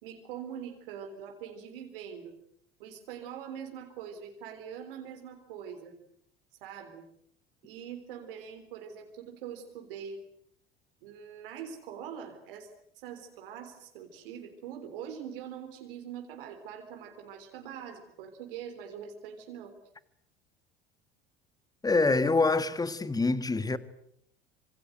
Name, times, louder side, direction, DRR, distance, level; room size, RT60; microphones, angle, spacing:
voice 1, 0.0-2.4 2.8-6.0 6.6-7.1 7.6-10.2 11.0-12.7 13.0-19.7, right 8 dB, 65° right, 3.7 m, -43 dB
voice 2, 21.8-23.8, left 3 dB, 10° left, 1.8 m, -25 dB
26.5 x 26.0 x 7.8 m
figure-of-eight pair, 65°, 30 cm